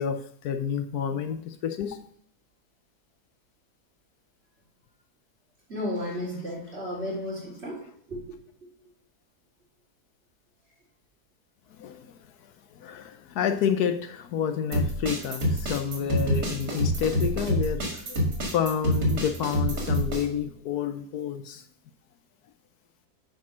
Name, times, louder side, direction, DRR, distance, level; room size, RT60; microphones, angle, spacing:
voice 1, 0.0-2.0 11.8-12.2 12.8-21.6, left 8 dB, 75° left, 8 dB, 1.2 m, -29 dB
voice 2, 5.7-7.8 8.1-8.2, left 1 dB, 40° right, -6 dB, 4.2 m, -33 dB
sound 1, 14.7-20.2, equal, 75° right, 2.8 m, -26 dB
9.2 x 5.2 x 6.2 m, 0.64 s
omnidirectional pair, 1.7 m